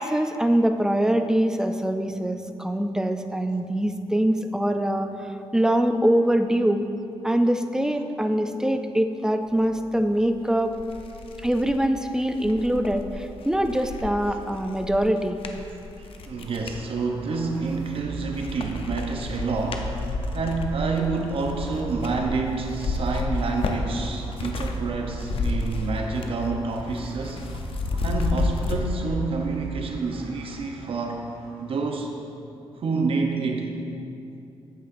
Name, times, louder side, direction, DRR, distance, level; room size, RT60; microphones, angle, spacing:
voice 1, 0.0-5.1 5.5-6.8 7.2-10.8 11.4-15.4, right 1 dB, 5° right, 7 dB, 0.5 m, -23 dB
sound 1, 10.2-10.3 10.7-16.8 17.4-18.0 18.3-24.8 25.0-26.4 26.7-28.8, left 3 dB, 60° left, 0.7 m, -32 dB
voice 2, 16.0-19.9 20.3-27.5 28.0-31.2 31.6-32.1 32.8-33.7, right 4 dB, 60° right, 2 dB, 0.7 m, -28 dB
sound 2, 16.2-31.8, right 2 dB, 80° right, 1.4 m, -38 dB
11.0 x 8.4 x 2.6 m, 2.7 s
cardioid pair, 90°, 10 cm